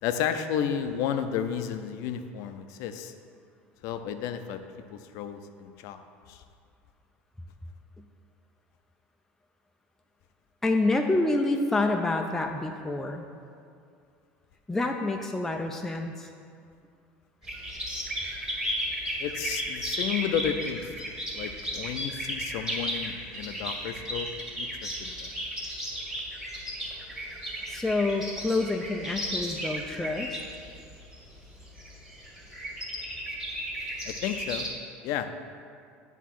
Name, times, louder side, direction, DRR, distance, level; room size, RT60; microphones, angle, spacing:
voice 1, 0.0-3.1 3.8-4.6 4.9-6.0 6.3-6.4 19.2-24.3 24.6-25.3 34.1-34.7 35.0-35.3, left 9 dB, 65° left, 8 dB, 0.5 m, -32 dB
voice 2, 10.6-13.2 14.7-16.3 27.7-30.4, left 2 dB, 5° left, 2 dB, 0.4 m, -27 dB
sound 1, 17.4-34.7, equal, 10° right, 1.9 m, -34 dB
8.2 x 3.6 x 6.0 m, 2.3 s
supercardioid pair, 110°, 6 cm